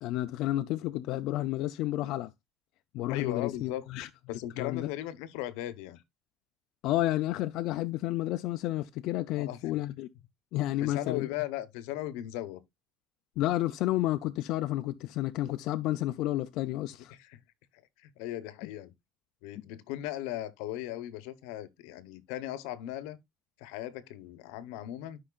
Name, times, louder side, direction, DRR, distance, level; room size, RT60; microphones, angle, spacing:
voice 1, 0.0-2.3 2.9-4.1 4.6-4.9 6.8-10.1 10.5-11.3 13.4-17.1, left 15 dB, 55° left, 0.4 m, -31 dB
voice 2, 3.1-3.8 4.3-6.0 9.3-9.6 10.8-12.6 17.1-17.4 17.7-18.9 19.4-23.2 23.6-25.2, left 13 dB, 85° left, 0.9 m, -37 dB
12.5 x 5.4 x 2.4 m
cardioid pair, 170°, 0 cm